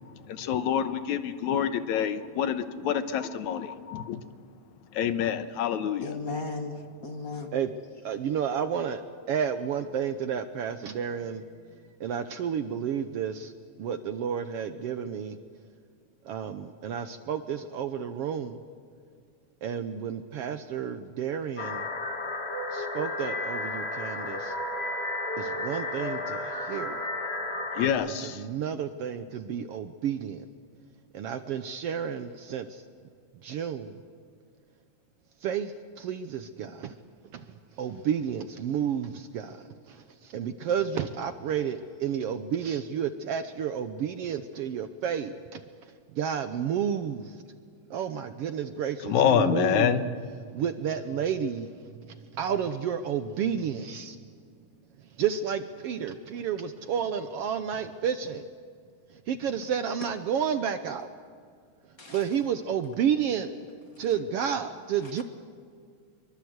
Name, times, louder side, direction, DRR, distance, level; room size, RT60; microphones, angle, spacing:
voice 1, 0.3-4.2 4.9-6.1 27.8-28.4 49.1-50.0, left 8 dB, 75° left, 10 dB, 2.4 m, -27 dB
voice 2, 6.0-7.6 62.0-62.2, left 3 dB, 45° left, 5 dB, 1.2 m, -36 dB
voice 3, 8.0-15.4 16.2-18.6 19.6-21.9 22.7-24.6 25.4-27.0 28.1-30.5 31.1-32.8 33.4-34.0 35.4-37.0 37.3-47.4 47.9-49.9 50.5-54.3 55.0-58.5 59.1-61.1 61.9-63.5 64.0-65.2, right 8 dB, 70° right, 9 dB, 1.5 m, -31 dB
sound 1, 21.6-27.9, left 2 dB, 25° left, 1.8 m, -33 dB
25.5 x 23.5 x 8.0 m, 2.1 s
omnidirectional pair, 3.4 m